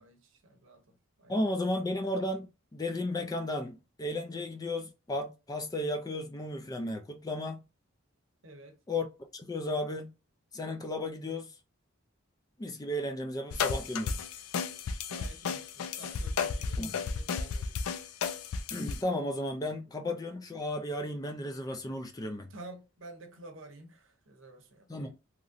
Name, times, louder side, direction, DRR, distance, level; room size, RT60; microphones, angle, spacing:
voice 1, 0.0-1.8 8.4-8.8 15.1-17.8 22.5-25.2, right 2 dB, 60° right, 0.8 m, -51 dB
voice 2, 1.3-7.6 8.9-9.1 9.3-10.1 10.5-11.5 12.6-14.3 16.8-16.9 18.7-22.5 24.9-25.2, left 1 dB, 15° left, 0.3 m, -34 dB
sound 1, 13.5-19.0, left 5 dB, 85° left, 0.4 m, -33 dB
3.0 x 2.6 x 2.5 m
head